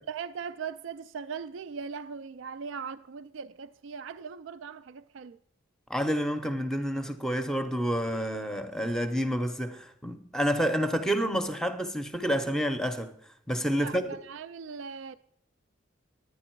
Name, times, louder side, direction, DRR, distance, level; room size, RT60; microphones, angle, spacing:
voice 1, 0.1-5.4 13.7-15.1, right 6 dB, 70° right, 0.4 m, -39 dB
voice 2, 5.9-13.2 13.5-14.1, equal, 5° left, 0.6 m, -29 dB
10.5 x 9.4 x 4.5 m
head